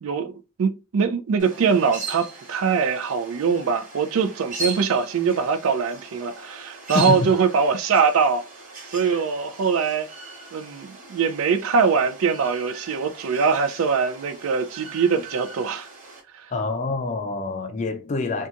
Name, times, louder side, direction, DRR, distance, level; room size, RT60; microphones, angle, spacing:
voice 1, 0.0-8.4 8.9-10.1 10.5-15.9 16.3-16.5, right 5 dB, 80° right, 0.4 m, -22 dB
sound 1, 1.4-16.2, right 3 dB, 40° right, 1.0 m, -39 dB
voice 2, 6.9-7.4 9.0-9.2 16.5-18.5, left 3 dB, 35° left, 0.4 m, -27 dB
2.8 x 2.3 x 2.4 m
head